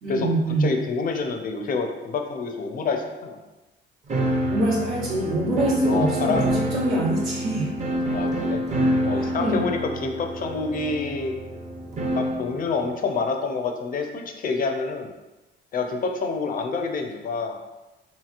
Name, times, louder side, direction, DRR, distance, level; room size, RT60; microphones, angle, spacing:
voice 1, 0.0-0.7 4.5-7.7 9.2-9.7, right 2 dB, 75° right, -8 dB, 0.9 m, -25 dB
voice 2, 0.6-3.4 5.9-6.4 8.1-8.6 9.0-11.3 12.1-15.1 15.7-17.6, left 4 dB, 45° left, 4 dB, 0.4 m, -27 dB
sound 1, 4.1-12.5, equal, 35° right, 0.6 m, -26 dB
2.9 x 2.7 x 2.4 m, 1.1 s
cardioid pair, 90°, 20 cm